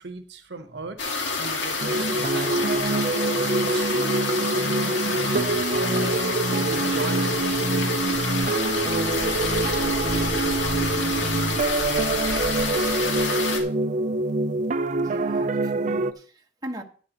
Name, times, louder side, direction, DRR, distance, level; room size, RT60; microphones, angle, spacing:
voice 1, 0.0-6.0 6.5-8.0, right 3 dB, 65° right, 1.0 m, -38 dB
sound 1, 1.0-13.6, left 3 dB, 80° left, 1.9 m, -28 dB
sound 2, 1.8-16.1, right 2 dB, 40° right, 0.5 m, -25 dB
voice 2, 15.0-16.8, right 1 dB, 20° right, 1.1 m, -39 dB
13.0 x 9.8 x 2.9 m
head